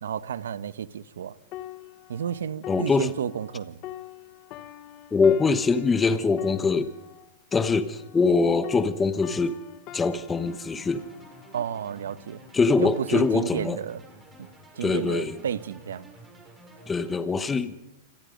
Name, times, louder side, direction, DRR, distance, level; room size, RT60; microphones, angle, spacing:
voice 1, 0.0-1.4 2.1-3.8 11.5-12.4 12.8-14.0 14.4-14.5 14.7-16.1, right 8 dB, 90° right, 1.1 m, -32 dB
sound 1, 1.5-8.4 8.6-12.2 12.9-13.1, left 13 dB, 35° left, 1.2 m, -44 dB
voice 2, 2.7-3.1 5.1-6.9 7.5-9.6 9.9-11.0 12.5-13.8 14.8-15.4 16.9-17.7, left 4 dB, 10° left, 1.1 m, -23 dB
sound 2, 10.3-17.2, right 1 dB, 10° right, 5.9 m, -50 dB
27.5 x 23.0 x 5.3 m
supercardioid pair, 150°, 0 cm